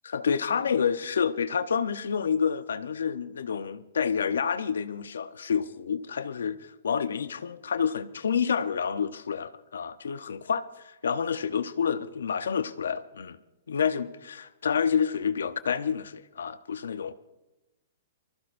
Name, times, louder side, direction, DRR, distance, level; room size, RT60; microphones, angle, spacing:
voice 1, 0.0-13.4 13.7-17.1, left 7 dB, 85° left, 0.8 m, -29 dB
25.0 x 14.0 x 2.6 m
hypercardioid pair, 135°, 0 cm